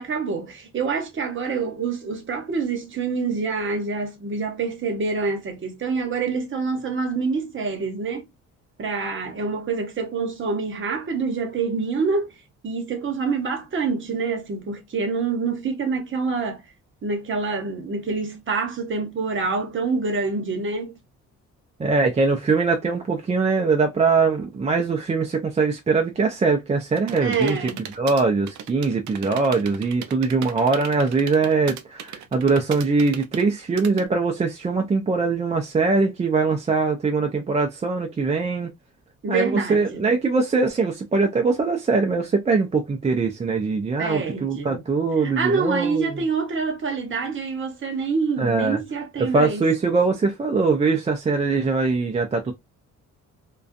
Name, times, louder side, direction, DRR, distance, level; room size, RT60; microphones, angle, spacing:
voice 1, 0.0-8.3 8.8-12.3 12.6-16.6 17.0-20.9 27.2-27.8 39.2-40.0 44.0-44.8 45.2-49.6, right 4 dB, 40° right, 1.0 m, -26 dB
voice 2, 21.8-27.6 28.0-38.7 39.3-46.1 48.4-48.8 49.2-52.5, right 4 dB, 20° right, 0.4 m, -22 dB
sound 1, 26.9-34.0, right 9 dB, 70° right, 0.5 m, -37 dB
2.4 x 2.3 x 2.5 m
cardioid pair, 90°, 30 cm